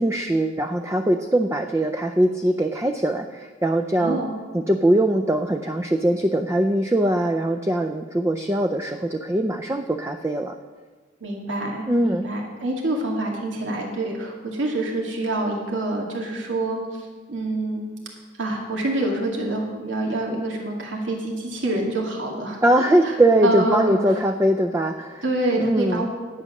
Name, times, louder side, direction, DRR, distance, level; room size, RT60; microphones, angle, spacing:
voice 1, 0.0-4.2 4.5-10.6 11.9-12.2 22.6-25.2 25.6-26.1, right 1 dB, 15° right, 6 dB, 0.4 m, -21 dB
voice 2, 4.0-4.3 11.2-17.8 18.4-23.2 23.4-24.0 25.2-26.1, right 2 dB, 85° right, -1 dB, 2.3 m, -26 dB
11.0 x 8.5 x 6.4 m, 1.4 s
head